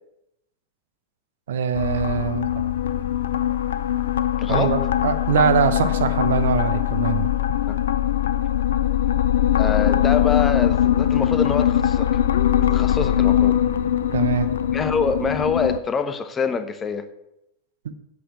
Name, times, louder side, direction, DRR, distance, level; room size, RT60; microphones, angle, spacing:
voice 1, 1.5-2.5 4.5-7.3 14.1-14.5 17.8-17.9, right 7 dB, 60° right, 10 dB, 0.8 m, -22 dB
sound 1, 1.7-15.8, left 11 dB, 65° left, 0.5 m, -21 dB
voice 2, 4.4-4.8 7.7-7.8 9.6-12.1 12.5-13.6 14.7-17.1, left 5 dB, 20° left, 10 dB, 0.9 m, -25 dB
8.4 x 7.5 x 8.2 m, 0.86 s
figure-of-eight pair, 90°, 0 cm